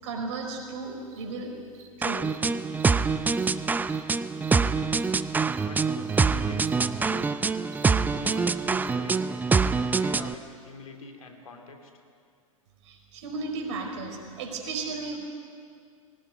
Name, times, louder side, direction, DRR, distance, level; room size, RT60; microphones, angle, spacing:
voice 1, 0.0-1.5 2.0-2.2 12.8-15.2, right 3 dB, 55° right, 3 dB, 4.8 m, -34 dB
Cricket, 1.1-1.2 1.7-1.9 2.2-2.4 2.8-2.9 3.3-3.5 3.9-4.0 4.4-4.6 5.0-5.1 5.5-5.6 6.1-6.2 6.6-6.7 7.2-7.3 7.7-7.8 8.3-8.4 8.8-8.9, right 10 dB, 40° right, 2.6 m, -51 dB
sound 1, 2.0-10.3, right 4 dB, 10° right, 0.6 m, -25 dB
voice 2, 5.6-7.4 8.1-9.4 10.0-11.9, left 3 dB, 80° left, 4 dB, 3.1 m, -44 dB
23.5 x 18.0 x 9.4 m, 2.3 s
figure-of-eight pair, 100°, 18 cm